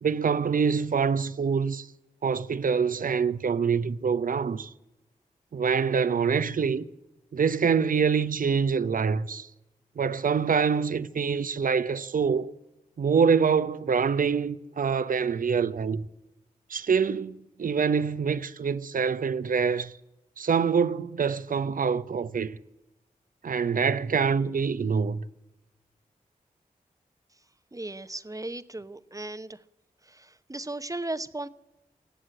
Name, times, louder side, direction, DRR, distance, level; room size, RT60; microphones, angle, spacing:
voice 1, 0.0-1.9 2.2-4.7 5.5-6.9 7.3-9.5 10.0-12.5 13.0-16.1 16.7-19.9 20.4-22.5 23.4-25.2, right 6 dB, 65° right, 0.7 m, -25 dB
voice 2, 27.7-29.6 30.0-31.5, right 2 dB, 20° right, 0.9 m, -36 dB
18.0 x 7.9 x 9.0 m
cardioid pair, 40°, 15 cm